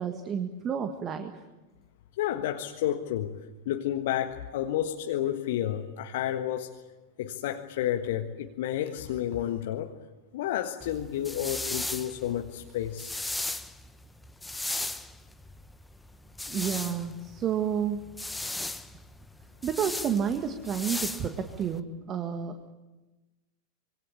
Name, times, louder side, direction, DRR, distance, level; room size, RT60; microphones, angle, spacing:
voice 1, 0.0-1.4 16.5-18.0 19.6-22.7, right 8 dB, 30° right, 6 dB, 1.8 m, -30 dB
voice 2, 2.2-3.4 3.6-6.8 7.2-9.9 10.3-13.1, left 11 dB, 55° left, 5 dB, 1.5 m, -31 dB
sound 1, 10.8-21.8, left 2 dB, 5° left, 1.3 m, -37 dB
25.5 x 23.5 x 8.2 m, 1.1 s
figure-of-eight pair, 90°, 0 cm